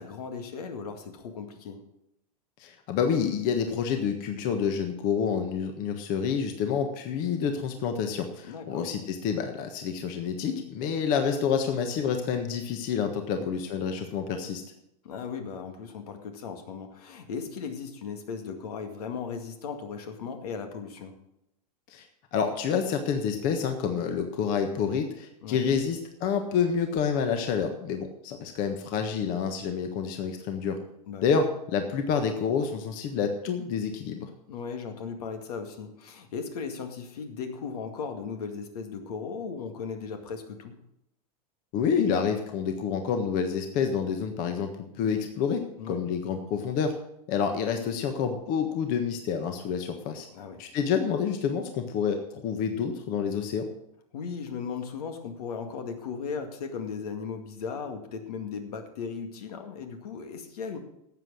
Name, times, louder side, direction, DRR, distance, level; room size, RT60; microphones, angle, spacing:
voice 1, 0.0-1.8 8.4-8.9 13.3-13.5 15.0-21.1 25.4-25.6 31.1-31.3 34.5-40.8 45.8-46.0 50.3-50.6 54.1-60.8, left 5 dB, 80° left, 6 dB, 2.1 m, -37 dB
voice 2, 2.6-14.6 21.9-22.0 22.3-30.8 31.2-31.4 31.7-34.3 41.7-45.6 45.9-46.9 47.3-50.3 50.6-53.7, left 6 dB, 45° left, 6 dB, 1.5 m, -28 dB
12.5 x 8.0 x 6.3 m, 0.80 s
supercardioid pair, 130°, 19 cm